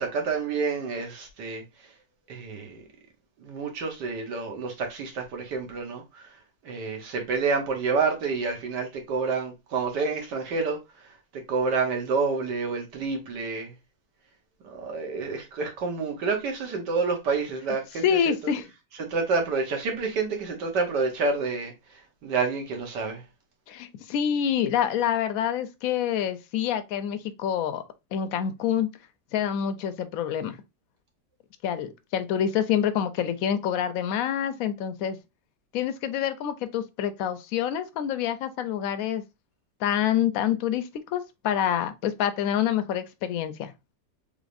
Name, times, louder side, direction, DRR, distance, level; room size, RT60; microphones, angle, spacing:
voice 1, 0.0-1.6 2.3-2.8 3.4-6.3 6.6-13.7 14.6-18.3 19.0-23.2, right 4 dB, 80° right, 1.7 m, -29 dB
voice 2, 18.0-18.7 23.7-27.8 28.1-28.9 29.3-30.6 31.6-35.2 35.7-39.2 39.8-43.7, left 9 dB, 70° left, 0.9 m, -27 dB
4.0 x 3.5 x 2.5 m
omnidirectional pair, 1.8 m